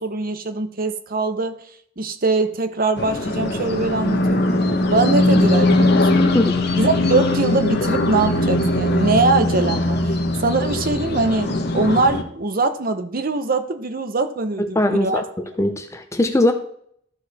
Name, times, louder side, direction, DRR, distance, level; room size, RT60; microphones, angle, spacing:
voice 1, 0.0-1.6 2.0-4.5 4.9-6.3 6.8-10.0 10.4-15.2, right 3 dB, 50° right, 9 dB, 0.9 m, -22 dB
sound 1, 3.0-12.2, left 2 dB, 60° left, 1.2 m, -20 dB
voice 2, 14.6-15.2 15.6-16.5, left 1 dB, 15° left, 7 dB, 0.6 m, -20 dB
13.0 x 4.8 x 4.2 m, 0.66 s
head